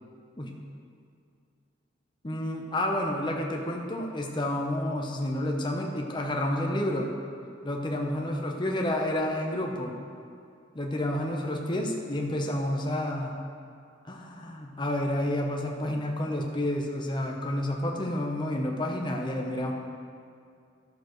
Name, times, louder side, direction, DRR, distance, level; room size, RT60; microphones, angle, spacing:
voice 1, 2.2-7.1 7.6-9.9 10.7-13.3 14.0-19.7, left 1 dB, 25° left, 1 dB, 0.9 m, -30 dB
13.0 x 6.9 x 3.2 m, 2.4 s
head